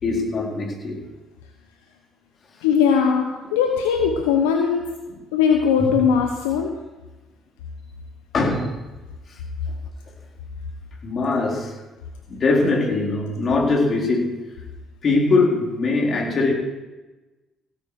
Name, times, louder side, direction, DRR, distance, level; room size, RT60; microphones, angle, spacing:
voice 1, 0.0-1.0 5.8-5.9 8.3-8.7 11.0-11.7 12.3-14.3 15.0-16.5, left 3 dB, 50° left, -1 dB, 3.9 m, -21 dB
voice 2, 2.6-3.3 3.5-4.8 5.3-6.7, left 7 dB, 80° left, 3 dB, 1.0 m, -19 dB
16.5 x 9.4 x 4.8 m, 1.1 s
hypercardioid pair, 50°, 0 cm